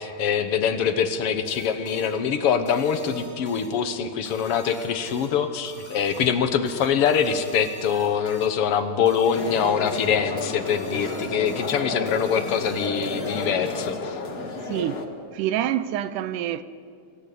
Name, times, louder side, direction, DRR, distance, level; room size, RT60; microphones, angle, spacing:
voice 1, 0.0-14.2, left 7 dB, 60° left, 1.7 m, -24 dB
sound 1, 1.5-14.2, right 1 dB, 5° right, 4.2 m, -47 dB
sound 2, 9.3-15.0, left 4 dB, 40° left, 1.7 m, -31 dB
voice 2, 14.6-15.1 15.3-16.6, right 12 dB, 80° right, 2.2 m, -26 dB
27.0 x 15.0 x 8.5 m
omnidirectional pair, 3.6 m